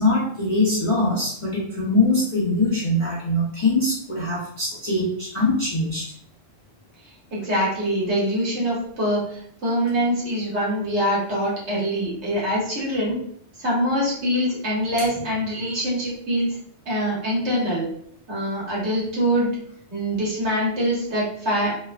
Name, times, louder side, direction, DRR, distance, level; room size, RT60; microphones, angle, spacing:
voice 1, 0.0-6.1, left 2 dB, 40° left, -8 dB, 0.5 m, -22 dB
voice 2, 7.0-13.2 13.6-16.6 16.8-17.9 18.3-19.5 19.9-21.7, equal, 65° right, -5 dB, 1.3 m, -24 dB
2.8 x 2.1 x 2.3 m, 0.65 s
omnidirectional pair, 1.3 m